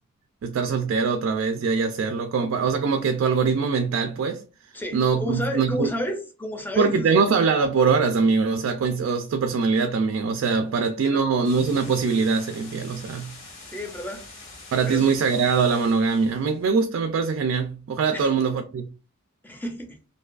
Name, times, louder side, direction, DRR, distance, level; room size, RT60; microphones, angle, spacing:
voice 1, 0.4-4.4 4.9-5.9 6.8-13.4 14.7-18.9, right 5 dB, 90° right, 0.3 m, -23 dB
voice 2, 4.7-7.1 10.7-11.4 13.7-14.2 14.9-15.1 18.1-18.3 19.4-20.0, left 1 dB, 10° left, 0.5 m, -32 dB
sound 1, 11.4-16.6, left 3 dB, 75° left, 1.1 m, -44 dB
2.6 x 2.3 x 2.3 m
head